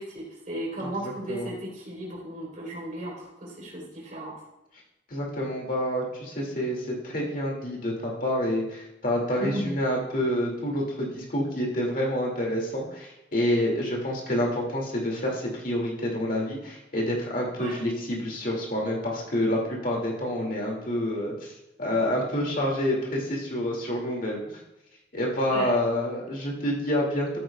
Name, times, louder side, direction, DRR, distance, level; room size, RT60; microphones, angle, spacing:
voice 1, 0.0-4.4 9.4-9.7 17.6-17.8 25.5-25.7, right 1 dB, 40° right, -3 dB, 3.6 m, -35 dB
voice 2, 0.8-1.5 5.1-21.5 21.8-24.6 25.1-27.4, left 1 dB, 45° left, -2 dB, 2.3 m, -28 dB
13.5 x 9.3 x 2.3 m, 0.90 s
head